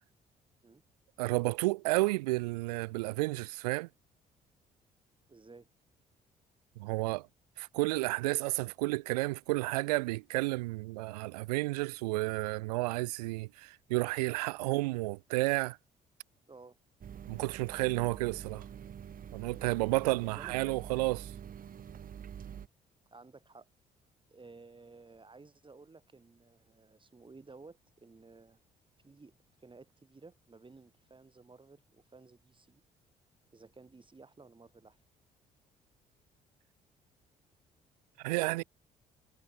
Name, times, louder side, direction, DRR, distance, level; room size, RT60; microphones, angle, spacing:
voice 1, 1.2-3.9 6.8-7.3 7.6-15.8 17.3-18.6 19.3-21.3 38.2-38.6, right 22 dB, 70° right, 0.5 m, -31 dB
voice 2, 5.3-5.7 16.5-16.8 20.0-21.1 23.1-23.7 24.3-28.6 29.0-29.3 29.6-32.8 33.5-35.0, right 3 dB, 25° right, 7.4 m, -55 dB
sound 1, 17.0-22.7, right 8 dB, 45° right, 1.6 m, -46 dB
figure-of-eight pair, 45°, 21 cm